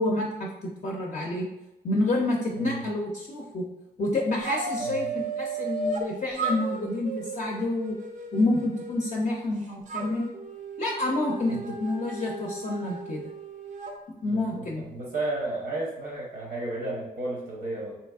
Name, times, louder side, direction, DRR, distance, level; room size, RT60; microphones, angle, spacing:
voice 1, 0.0-1.5 1.8-3.7 4.0-8.0 8.3-10.3 10.8-13.2 14.2-14.9, left 2 dB, 45° left, -1 dB, 0.4 m, -28 dB
voice 2, 2.5-2.9 4.8-5.1 11.5-11.6 14.2-18.0, right 2 dB, 75° right, -3 dB, 0.8 m, -33 dB
sound 1, 4.4-6.1 6.4-9.5 9.9-13.9, right 4 dB, 45° right, 0.4 m, -35 dB
3.3 x 2.8 x 2.3 m, 0.94 s
wide cardioid pair, 135°, 17 cm